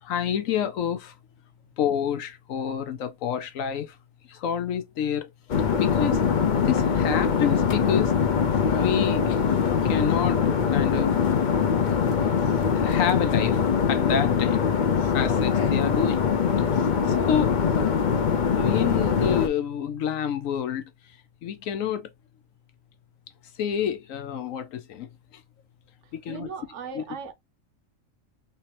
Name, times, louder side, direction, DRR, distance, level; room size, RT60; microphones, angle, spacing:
voice 1, 0.0-1.1 1.8-4.0 4.3-5.3 5.8-6.2 6.6-8.1 8.8-9.4 9.8-10.4 10.7-11.1 11.9-12.2 12.8-14.6 15.1-16.2 17.1-17.6 18.6-20.9 21.4-22.1 23.6-25.1 26.1-26.5 26.9-27.0, left 8 dB, 80° left, 1.1 m, -28 dB
sound 1, 5.5-19.5, left 7 dB, 50° left, 0.6 m, -22 dB
voice 2, 26.3-27.3, right 5 dB, 65° right, 1.0 m, -37 dB
3.3 x 3.1 x 2.9 m
omnidirectional pair, 1.4 m